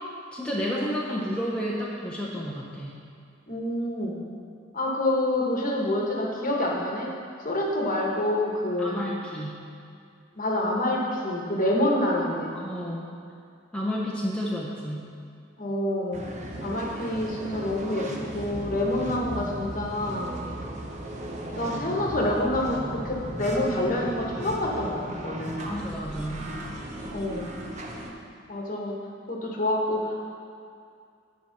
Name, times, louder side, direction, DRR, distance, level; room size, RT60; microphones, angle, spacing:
voice 1, 0.3-2.9 8.8-9.5 12.5-13.1 13.7-15.0 25.6-26.4, equal, 5° left, -5 dB, 0.7 m, -31 dB
voice 2, 3.5-4.2 4.7-7.1 7.4-9.0 10.4-12.6 15.6-16.3 16.6-20.4 21.5-25.8 27.1-27.6 28.5-29.0 29.3-30.2, left 1 dB, 45° left, -1 dB, 1.2 m, -27 dB
sound 1, 16.1-28.1, right 1 dB, 35° right, 0.8 m, -36 dB
10.0 x 4.5 x 5.8 m, 2.4 s
head